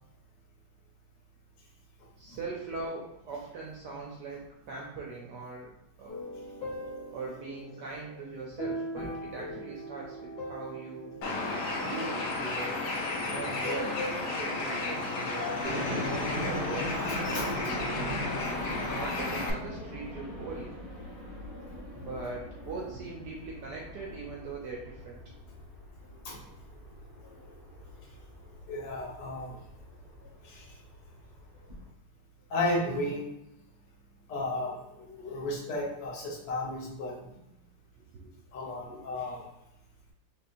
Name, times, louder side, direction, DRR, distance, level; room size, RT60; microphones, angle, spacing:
voice 1, 2.2-5.7 6.0-6.2 7.1-11.1 11.7-12.8 13.3-16.9 17.2-18.2 18.9-20.7 21.9-25.2 38.2-38.3 38.9-39.0, right 4 dB, 75° right, -2 dB, 1.0 m, -41 dB
sound 1, 6.1-12.7 13.3-15.9, equal, 50° left, 1.3 m, -41 dB
Bird, 11.2-19.5, left 2 dB, 70° left, 1.0 m, -33 dB
sound 2, 15.6-31.9, left 1 dB, 45° right, 0.4 m, -40 dB
voice 2, 28.7-29.6 30.4-30.7 32.5-33.2 34.3-37.4 38.5-39.4, left 1 dB, 90° left, -2 dB, 1.9 m, -34 dB
5.1 x 2.2 x 2.5 m, 0.87 s
omnidirectional pair, 2.4 m